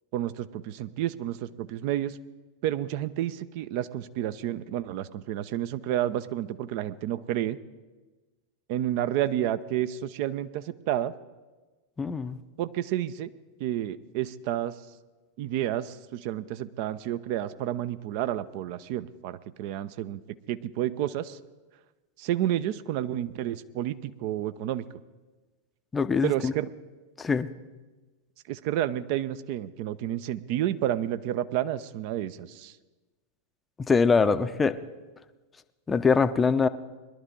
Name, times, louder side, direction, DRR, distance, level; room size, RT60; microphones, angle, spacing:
voice 1, 0.1-2.2 2.6-7.6 8.7-11.1 12.6-13.3 13.6-14.8 15.4-21.4 22.2-24.8 26.2-26.7 28.5-32.8, right 12 dB, 45° right, 13 dB, 0.5 m, -30 dB
voice 2, 12.0-12.4 25.9-26.5 27.2-27.5 33.8-34.8 35.9-36.7, left 5 dB, 15° left, 12 dB, 0.6 m, -23 dB
21.0 x 11.5 x 3.7 m, 1.2 s
figure-of-eight pair, 90°, 0 cm